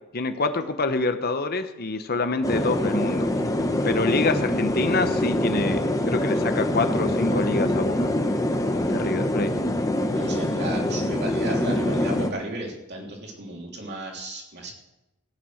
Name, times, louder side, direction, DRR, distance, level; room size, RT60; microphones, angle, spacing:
voice 1, 0.1-3.3 3.8-8.1 8.7-9.5, left 3 dB, 45° left, 9 dB, 0.9 m, -26 dB
sound 1, 2.4-12.3, left 1 dB, 15° left, 0.9 m, -24 dB
voice 2, 10.1-14.7, right 1 dB, 50° right, 0 dB, 3.0 m, -34 dB
16.0 x 9.2 x 6.4 m, 0.98 s
head